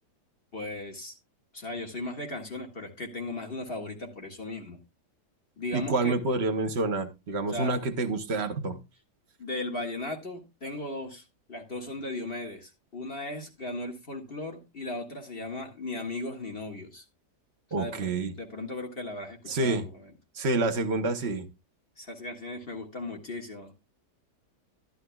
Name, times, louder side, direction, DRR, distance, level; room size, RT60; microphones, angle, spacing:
voice 1, 0.5-1.2 1.5-4.8 5.6-6.2 7.5-7.8 9.4-11.2 11.5-17.0 17.8-18.1 18.4-20.1 22.0-23.7, left 2 dB, 35° left, 2 dB, 1.8 m, -37 dB
voice 2, 5.7-8.8 17.7-18.3 19.5-19.8 20.4-21.5, right 3 dB, 45° right, 8 dB, 1.0 m, -28 dB
12.0 x 11.5 x 2.3 m, 0.24 s
omnidirectional pair, 1.8 m